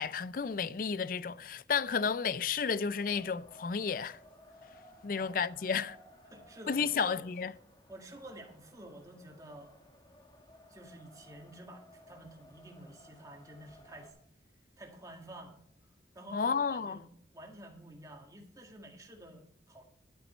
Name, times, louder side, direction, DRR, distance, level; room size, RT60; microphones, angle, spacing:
voice 1, 0.0-4.2 5.0-6.0 6.7-7.5 16.3-17.0, left 6 dB, 50° left, 0.4 m, -32 dB
Wind, 2.9-14.1, equal, 25° left, 1.4 m, -58 dB
voice 2, 6.3-7.2 7.9-9.7 10.7-14.1 14.8-15.6 16.1-19.8, right 1 dB, 20° right, 1.7 m, -50 dB
11.5 x 9.0 x 4.3 m
head